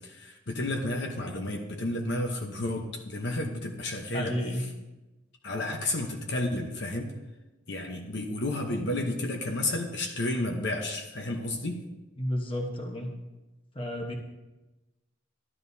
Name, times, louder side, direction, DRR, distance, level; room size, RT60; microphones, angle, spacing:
voice 1, 0.0-4.3 5.4-7.1 7.7-11.8, left 1 dB, 55° left, 2 dB, 0.9 m, -31 dB
voice 2, 4.1-4.7 12.2-13.1 13.7-14.2, equal, 25° left, 2 dB, 1.1 m, -31 dB
12.5 x 11.0 x 2.7 m, 1.1 s
head